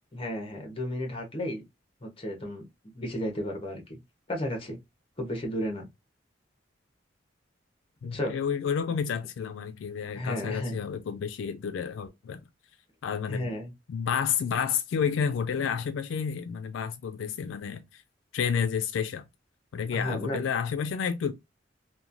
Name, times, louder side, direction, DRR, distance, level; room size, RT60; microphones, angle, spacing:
voice 1, 0.1-1.6 2.0-4.0 4.3-4.8 5.2-5.9 8.1-8.4 10.1-10.7 13.3-13.7 19.9-20.4, left 1 dB, 30° left, 0.8 m, -33 dB
voice 2, 8.0-12.4 13.0-13.5 13.9-18.0 18.3-19.2 19.7-21.3, left 7 dB, 85° left, 0.3 m, -30 dB
3.0 x 2.2 x 2.5 m
head